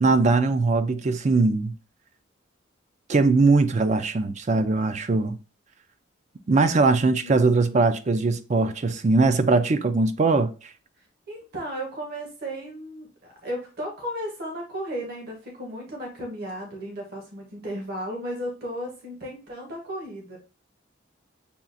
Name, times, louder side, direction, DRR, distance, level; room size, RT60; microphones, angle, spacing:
voice 1, 0.0-1.7 3.1-5.4 6.5-10.5, right 3 dB, 35° right, 0.4 m, -21 dB
voice 2, 7.2-7.9 11.3-20.4, equal, 55° right, 1.1 m, -35 dB
7.0 x 2.4 x 2.5 m
head